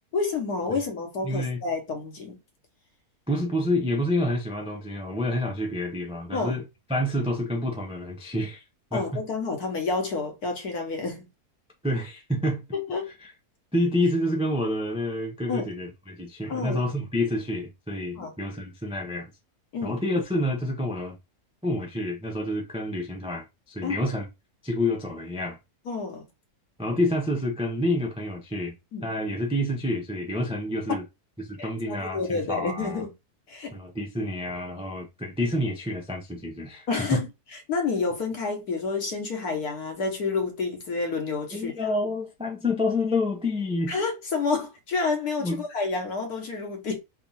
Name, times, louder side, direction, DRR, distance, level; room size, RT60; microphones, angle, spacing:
voice 1, 0.1-2.4 6.3-6.5 8.9-11.3 12.7-13.1 15.5-15.7 16.5-16.8 18.2-18.3 19.7-20.0 23.8-24.0 25.9-26.3 28.9-29.1 31.6-33.1 33.5-33.7 36.9-37.3 37.7-41.7 43.9-47.0, left 4 dB, 70° left, 1.5 m, -29 dB
voice 2, 1.2-1.6 3.3-6.6 6.9-8.6 8.9-9.2 11.8-12.6 13.2-13.3 13.7-19.3 19.8-21.2 21.6-24.2 24.6-25.6 26.8-28.8 29.0-31.0 31.5-33.0 33.7-37.2 41.5-44.0 45.4-45.7, left 1 dB, 10° right, 0.4 m, -28 dB
3.7 x 2.4 x 4.0 m
omnidirectional pair, 1.7 m